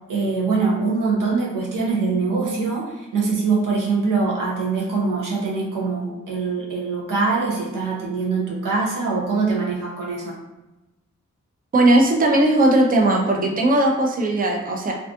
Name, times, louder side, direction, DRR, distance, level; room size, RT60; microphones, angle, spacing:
voice 1, 0.1-10.4, right 4 dB, 85° right, -3 dB, 0.7 m, -23 dB
voice 2, 11.7-15.0, right 1 dB, 30° right, 1 dB, 0.5 m, -18 dB
2.5 x 2.4 x 2.3 m, 1.0 s
cardioid pair, 55°, 31 cm